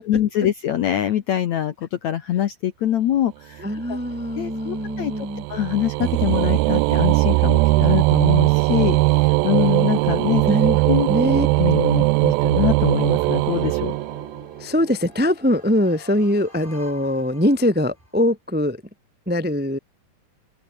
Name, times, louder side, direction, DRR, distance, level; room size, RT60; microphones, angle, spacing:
voice 1, 0.1-3.6 3.9-4.0 4.4-10.4 10.9-11.1 11.6-13.9, left 11 dB, 70° left, 1.8 m, -24 dB
voice 2, 3.6-5.4 10.4-11.5 14.6-18.8 19.3-19.8, left 1 dB, 5° right, 0.9 m, -22 dB
Low D Arh, 3.7-14.6, right 22 dB, 80° right, 2.2 m, -20 dB
sound 1, 13.5-18.2, left 1 dB, 10° left, 8.0 m, -46 dB
open air
omnidirectional pair, 4.6 m